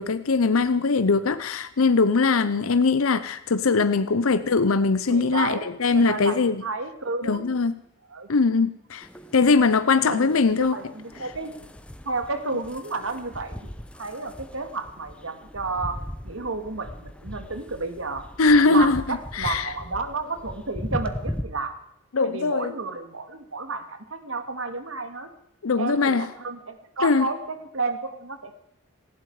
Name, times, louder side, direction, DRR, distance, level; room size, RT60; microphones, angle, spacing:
voice 1, 0.0-6.6 7.2-7.8 8.3-10.8 18.4-19.7 22.1-22.7 25.6-26.3 27.0-27.3, left 4 dB, 80° left, 0.7 m, -21 dB
voice 2, 5.1-5.7 5.9-7.5 8.1-8.3 10.0-11.5 12.0-18.3 18.7-21.7 22.2-25.3 25.8-28.5, right 3 dB, 75° right, 2.1 m, -31 dB
sound 1, 9.0-21.4, equal, 5° left, 0.8 m, -39 dB
18.5 x 15.5 x 4.8 m
head